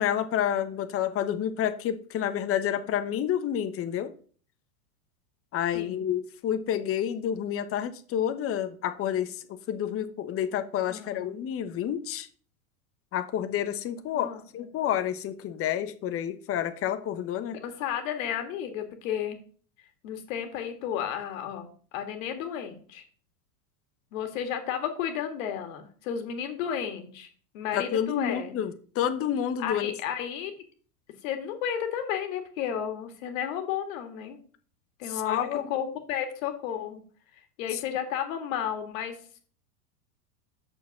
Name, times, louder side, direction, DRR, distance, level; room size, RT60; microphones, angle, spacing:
voice 1, 0.0-4.1 5.5-12.3 13.1-17.6 27.7-29.9 35.1-35.7 37.7-37.8, left 10 dB, 30° left, 9 dB, 1.0 m, -29 dB
voice 2, 5.7-6.1 10.9-11.4 14.1-14.4 17.5-19.4 20.0-23.1 24.1-27.3 27.5-28.5 29.6-30.5 31.2-34.4 35.0-37.0 37.3-39.4, left 9 dB, 60° left, 6 dB, 2.0 m, -33 dB
6.6 x 5.1 x 7.0 m, 0.43 s
hypercardioid pair, 110°, 44 cm